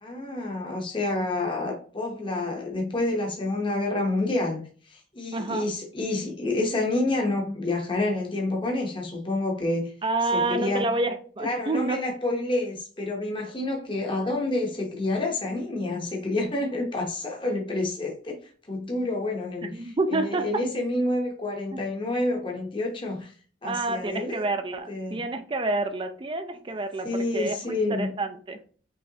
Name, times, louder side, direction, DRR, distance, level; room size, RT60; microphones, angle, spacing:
voice 1, 0.0-9.9 10.3-10.9 11.4-18.4 18.7-23.3 23.6-24.4 24.9-25.2 27.0-28.1, left 2 dB, 25° left, 0 dB, 0.8 m, -28 dB
voice 2, 5.3-5.7 10.0-12.0 19.6-20.6 21.7-21.8 23.6-27.6 27.9-28.6, right 2 dB, 25° right, 8 dB, 0.4 m, -28 dB
5.5 x 3.2 x 2.8 m, 0.42 s
head